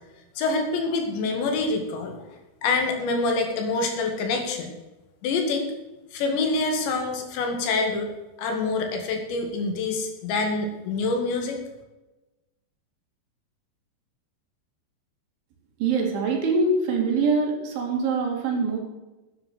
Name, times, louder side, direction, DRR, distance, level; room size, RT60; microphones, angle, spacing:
voice 1, 0.4-2.2 2.6-4.7 5.2-5.7 6.1-8.1 8.4-11.6, left 3 dB, 75° left, 4 dB, 4.2 m, -26 dB
voice 2, 15.8-18.8, right 4 dB, 80° right, 1 dB, 5.0 m, -24 dB
10.5 x 10.5 x 6.3 m, 1.1 s
omnidirectional pair, 5.3 m